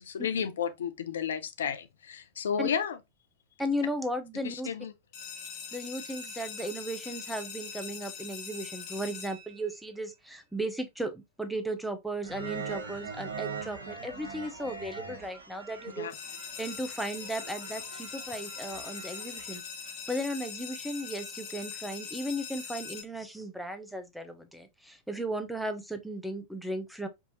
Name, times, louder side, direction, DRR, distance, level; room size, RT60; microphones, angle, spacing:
voice 1, 0.0-3.0 4.4-4.9 16.0-16.1, left 7 dB, 65° left, 0.4 m, -32 dB
voice 2, 3.6-4.7 5.7-16.1 16.6-19.6 20.1-27.1, right 1 dB, ahead, 0.6 m, -35 dB
sound 1, 5.1-10.0 16.1-23.0, left 6 dB, 40° left, 1.2 m, -42 dB
sound 2, 12.2-19.6, right 5 dB, 65° right, 0.9 m, -42 dB
4.6 x 2.8 x 2.7 m
figure-of-eight pair, 90°, 0 cm